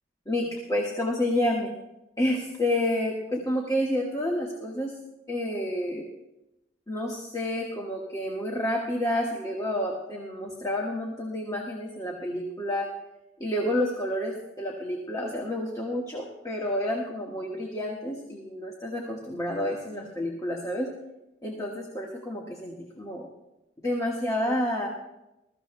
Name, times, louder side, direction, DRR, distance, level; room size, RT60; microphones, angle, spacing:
voice 1, 0.3-1.7 2.2-4.9 5.3-6.0 6.9-12.9 13.4-20.9 21.4-23.3 23.8-24.9, left 1 dB, 20° left, -1 dB, 1.4 m, -29 dB
21.5 x 14.0 x 2.2 m, 0.92 s
head